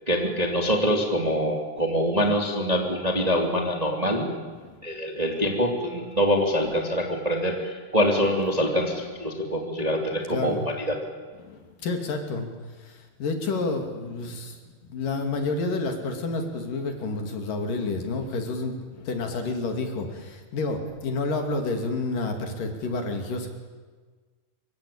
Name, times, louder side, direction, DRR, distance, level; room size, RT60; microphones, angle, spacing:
voice 1, 0.1-4.3 4.8-11.0, equal, 10° right, 2 dB, 2.3 m, -25 dB
voice 2, 10.1-10.7 11.4-12.5 12.8-14.6 14.9-23.5, left 3 dB, 60° left, 4 dB, 4.1 m, -29 dB
26.0 x 24.5 x 8.7 m, 1.4 s
omnidirectional pair, 4.4 m